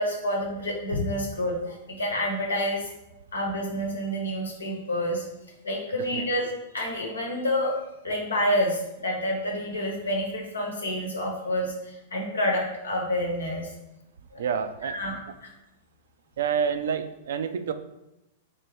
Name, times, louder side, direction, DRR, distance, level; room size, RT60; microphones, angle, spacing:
voice 1, 0.0-2.9 3.3-5.2 5.6-6.5 6.7-7.8 8.0-13.7 14.3-14.4 14.8-15.5, left 1 dB, 90° left, 0 dB, 1.1 m, -28 dB
voice 2, 14.4-15.0 16.4-17.7, right 7 dB, 70° right, 10 dB, 0.3 m, -28 dB
3.4 x 3.0 x 4.4 m, 0.92 s
hypercardioid pair, 110°, 0 cm